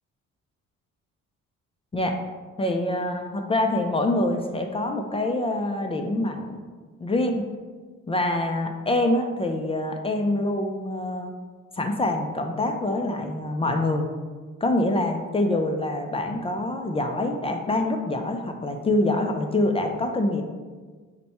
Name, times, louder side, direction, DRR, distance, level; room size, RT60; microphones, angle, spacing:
voice 1, 2.6-6.6 7.0-7.3 8.1-11.3 11.8-14.1 14.6-20.4, left 1 dB, 20° left, 3 dB, 0.3 m, -25 dB
4.3 x 2.2 x 4.1 m, 1.4 s
cardioid pair, 90°, 30 cm